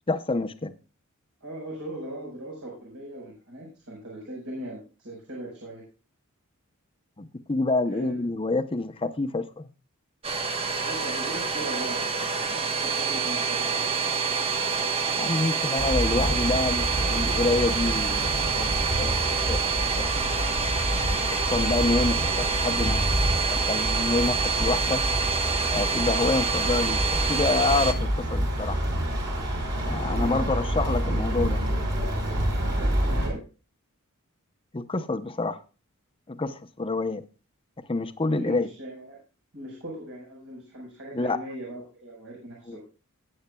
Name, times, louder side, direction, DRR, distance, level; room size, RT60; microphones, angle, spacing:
voice 1, 0.1-0.7 7.2-9.7 15.2-19.6 20.0-20.1 21.3-25.0 25.7-28.8 29.8-31.6 34.7-35.6 36.3-37.2 37.9-38.7 41.1-41.4 42.7-42.8, left 3 dB, 25° left, 0.7 m, -27 dB
voice 2, 1.4-5.8 7.9-8.2 10.8-13.9 30.1-30.4 32.7-33.4 38.3-39.2 39.5-42.8, right 1 dB, 70° right, 4.9 m, -39 dB
Domestic sounds home sounds, 10.2-27.9, right 5 dB, 25° right, 1.1 m, -27 dB
sound 1, 15.8-33.3, equal, 50° right, 4.9 m, -28 dB
18.5 x 8.6 x 2.3 m
head